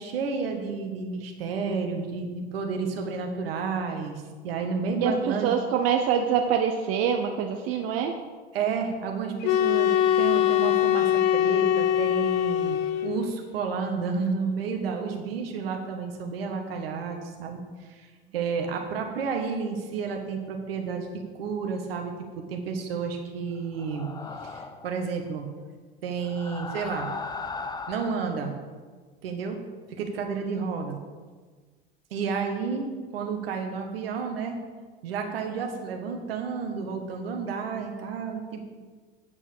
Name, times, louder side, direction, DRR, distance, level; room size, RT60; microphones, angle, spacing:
voice 1, 0.0-5.5 8.5-17.6 17.9-18.1 18.3-21.1 21.3-24.1 24.4-25.5 26.0-27.1 27.9-28.5 29.2-29.6 29.9-31.0 32.1-34.6 35.0-38.6, right 5 dB, 75° right, 4 dB, 1.6 m, -31 dB
voice 2, 5.4-8.1, right 8 dB, 55° right, 4 dB, 0.9 m, -25 dB
sound 1, 9.4-13.3, left 11 dB, 65° left, 0.6 m, -23 dB
sound 2, 23.7-24.9 26.2-28.4, left 4 dB, 15° left, 0.6 m, -37 dB
9.3 x 5.6 x 6.4 m, 1.4 s
hypercardioid pair, 80°, 29 cm